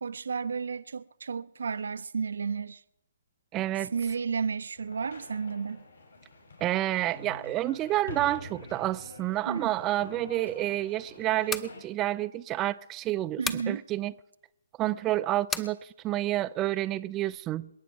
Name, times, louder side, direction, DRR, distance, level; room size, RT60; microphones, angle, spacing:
voice 1, 0.0-2.8 3.8-5.8 9.5-9.7 13.4-13.8, right 5 dB, 65° right, 0.6 m, -32 dB
voice 2, 3.5-3.9 6.6-13.4 13.7-14.1 14.8-17.7, right 15 dB, 20° right, 0.5 m, -29 dB
sound 1, 4.8-11.8, left 2 dB, 70° left, 6.7 m, -47 dB
sound 2, 11.3-11.7 13.4-13.7 15.5-15.7, left 5 dB, 10° left, 0.8 m, -32 dB
27.5 x 9.4 x 4.7 m
figure-of-eight pair, 135°, 0 cm